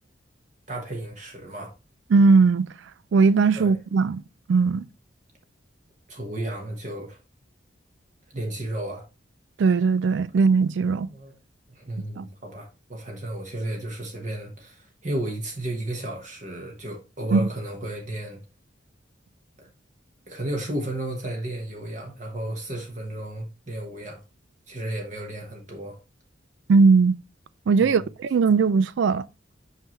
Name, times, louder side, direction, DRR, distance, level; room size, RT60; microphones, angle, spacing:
voice 1, 0.7-1.7 3.5-3.8 6.1-7.2 8.3-9.0 11.1-11.3 11.7-18.4 19.6-19.7 20.3-24.2 24.7-26.0 27.8-28.1, right 1 dB, 40° right, 1.1 m, -33 dB
voice 2, 2.1-2.7 3.1-4.2 4.5-4.8 9.6-11.1 12.2-12.3 17.3-17.5 26.7-27.2 27.7-29.2, right 4 dB, 65° right, 0.3 m, -19 dB
5.7 x 5.6 x 3.0 m
head